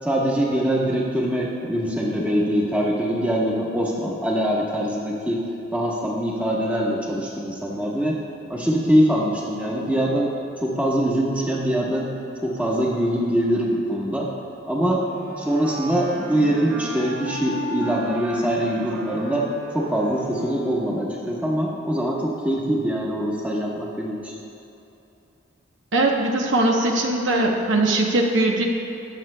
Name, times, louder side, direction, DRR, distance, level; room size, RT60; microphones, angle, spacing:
voice 1, 0.0-5.4 5.7-8.2 8.5-10.3 10.6-12.1 12.4-14.3 14.7-15.0 15.3-19.4 19.7-24.4, equal, 5° right, -4 dB, 1.1 m, -23 dB
Wind instrument woodwind instrument, 15.0-20.8, equal, 80° right, 2.0 m, -34 dB
voice 2, 25.9-28.6, right 2 dB, 65° right, 1 dB, 0.9 m, -20 dB
21.0 x 7.4 x 2.2 m, 2.9 s
head